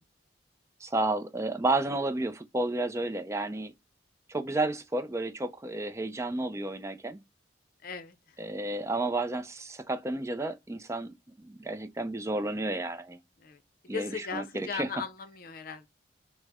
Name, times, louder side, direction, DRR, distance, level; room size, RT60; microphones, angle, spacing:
voice 1, 0.8-3.7 4.3-7.2 8.4-13.2 13.9-14.9, right 2 dB, 15° right, 0.4 m, -31 dB
voice 2, 7.8-8.4 13.4-13.6 13.9-15.9, left 5 dB, 50° left, 0.6 m, -38 dB
6.2 x 2.1 x 3.5 m
head